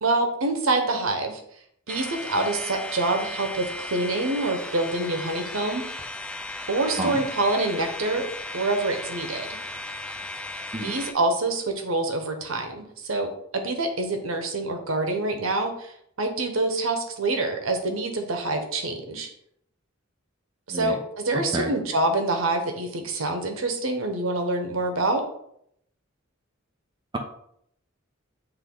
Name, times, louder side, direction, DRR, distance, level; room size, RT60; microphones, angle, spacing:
voice 1, 0.0-1.4 1.9-5.8 6.7-8.3 8.5-9.6 10.8-19.3 20.7-25.2, right 2 dB, 90° right, 5 dB, 1.0 m, -26 dB
sound 1, 1.9-11.1, left 1 dB, 5° left, 0.3 m, -36 dB
voice 2, 7.0-7.2 10.7-10.9 20.7-21.0 21.5-21.7, right 1 dB, 20° right, 2 dB, 0.7 m, -29 dB
8.2 x 3.2 x 3.8 m, 0.71 s
head